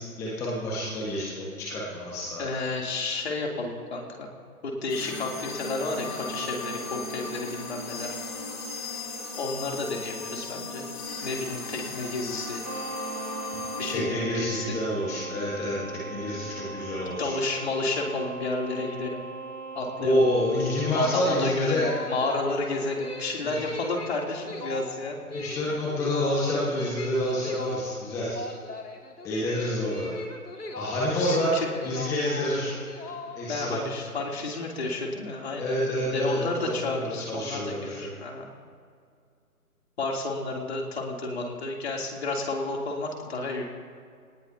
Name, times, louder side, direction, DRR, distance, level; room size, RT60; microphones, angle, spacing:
voice 1, 0.0-2.5 13.9-17.3 20.0-21.9 23.4-23.6 25.3-28.4 29.2-30.1 30.8-31.5 31.8-32.8 33.4-33.8 35.6-37.0 37.3-38.1, left 1 dB, 5° left, -6 dB, 1.5 m, -28 dB
voice 2, 2.4-4.3 4.6-8.1 9.4-10.8 11.2-12.6 13.8-14.8 17.0-19.3 19.7-20.3 20.9-25.2 31.1-31.7 33.5-35.8 36.1-38.5 40.0-43.6, left 3 dB, 45° left, -1 dB, 3.2 m, -31 dB
sound 1, 4.9-14.0, left 3 dB, 25° left, 2.5 m, -36 dB
sound 2, 12.6-21.1, right 4 dB, 75° right, 4.7 m, -39 dB
sound 3, 21.8-33.7, left 1 dB, 85° left, 2.7 m, -39 dB
24.5 x 19.0 x 2.9 m, 2.2 s
figure-of-eight pair, 150°, 45 cm